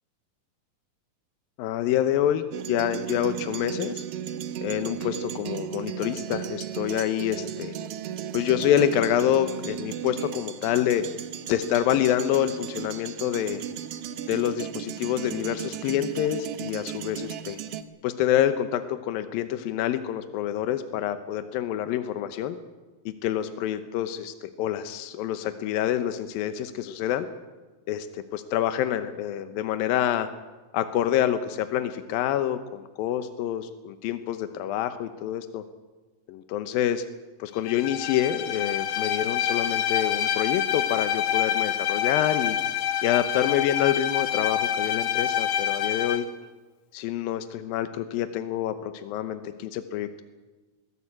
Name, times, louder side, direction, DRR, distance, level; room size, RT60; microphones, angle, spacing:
voice 1, 1.6-4.0 4.6-7.7 8.3-11.1 11.5-13.6 14.3-17.6 18.0-22.6 23.1-27.3 27.9-30.3 30.7-35.6 36.3-37.0 37.4-42.6 43.0-46.3 46.9-50.2, left 11 dB, 85° left, 10 dB, 2.7 m, -27 dB
sound 1, 2.5-17.8, right 10 dB, 65° right, 1.5 m, -35 dB
Bowed string instrument, 37.6-46.3, left 9 dB, 65° left, 2.6 m, -27 dB
21.0 x 17.5 x 8.7 m, 1.2 s
omnidirectional pair, 4.0 m